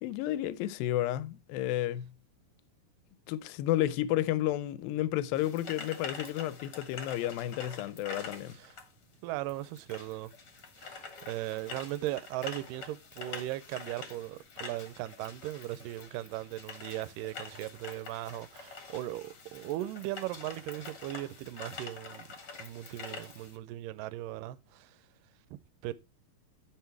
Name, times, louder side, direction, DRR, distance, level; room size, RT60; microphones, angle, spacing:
voice 1, 0.0-2.1 3.3-8.6, left 13 dB, 80° left, 2.3 m, -31 dB
sound 1, 5.3-23.6, left 4 dB, 40° left, 1.6 m, -46 dB
voice 2, 9.2-10.3 10.8-22.3 22.6-25.0 25.5-25.9, right 15 dB, 80° right, 2.0 m, -38 dB
10.0 x 5.8 x 4.5 m
omnidirectional pair, 4.3 m